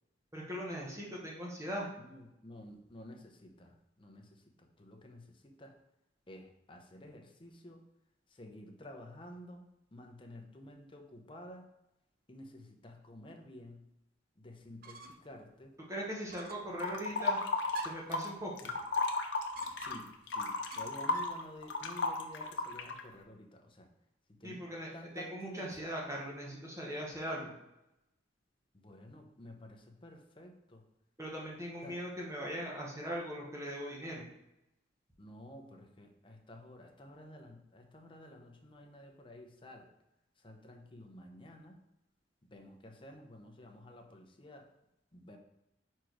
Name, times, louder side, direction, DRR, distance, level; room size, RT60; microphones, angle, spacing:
voice 1, 0.3-1.9 15.9-17.4 17.8-18.7 24.4-27.5 31.2-34.2, equal, 15° right, -3 dB, 1.2 m, -40 dB
voice 2, 2.0-5.7 6.3-7.8 8.3-11.6 12.3-13.9 14.4-15.8 19.8-23.9 24.3-25.9 28.7-30.8 31.8-32.0 35.2-39.9 40.4-41.7 42.5-44.7 45.1-45.4, left 1 dB, 30° left, 3 dB, 0.8 m, -52 dB
sound 1, 14.8-15.4 15.7-15.8 16.3-16.8 17.7-18.2 19.5-20.2 20.7-21.4, right 5 dB, 55° right, 0.6 m, -48 dB
sound 2, 16.8-18.3 18.6-23.0, left 3 dB, 70° left, 0.7 m, -34 dB
4.9 x 4.5 x 4.5 m, 0.88 s
head